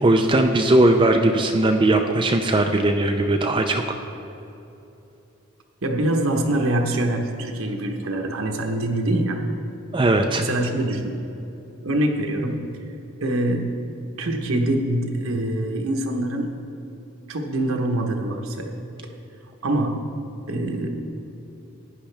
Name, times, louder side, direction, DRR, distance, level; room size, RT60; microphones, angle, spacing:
voice 1, 0.0-3.8 9.9-10.4, right 2 dB, 25° right, 4 dB, 0.4 m, -19 dB
voice 2, 5.8-9.4 10.3-11.2 11.8-12.7 13.2-13.8 14.2-16.5 17.3-18.7 19.6-20.0 20.5-20.9, right 1 dB, 75° right, 2 dB, 1.1 m, -24 dB
15.5 x 10.0 x 3.4 m, 2.9 s
head